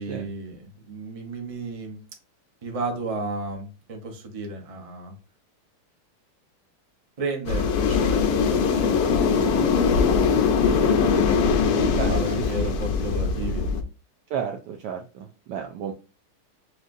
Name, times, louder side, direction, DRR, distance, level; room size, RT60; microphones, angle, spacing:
voice 1, 0.0-2.0 2.6-5.1 7.2-9.9 10.6-13.7, right 2 dB, 45° right, 2 dB, 0.4 m, -33 dB
sound 1, 7.5-13.8, left 5 dB, 85° left, 0.8 m, -21 dB
voice 2, 11.7-12.7 14.3-15.9, right 8 dB, 75° right, 3 dB, 1.0 m, -32 dB
6.3 x 2.4 x 2.6 m, 0.33 s
omnidirectional pair, 2.3 m